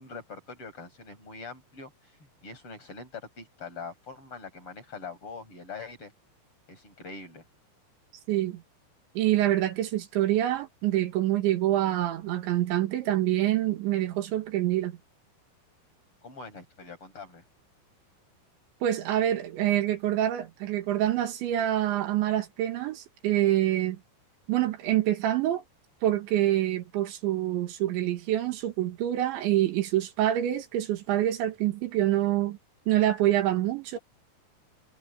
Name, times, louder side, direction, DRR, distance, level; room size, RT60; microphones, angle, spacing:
voice 1, 0.0-6.1 6.7-7.5 16.2-17.4, left 4 dB, 30° left, 6.6 m, -43 dB
voice 2, 8.3-8.6 9.2-15.0 18.8-24.0 24.5-25.6 26.0-32.6 32.9-34.0, right 13 dB, 80° right, 4.1 m, -26 dB
omnidirectional pair, 5.2 m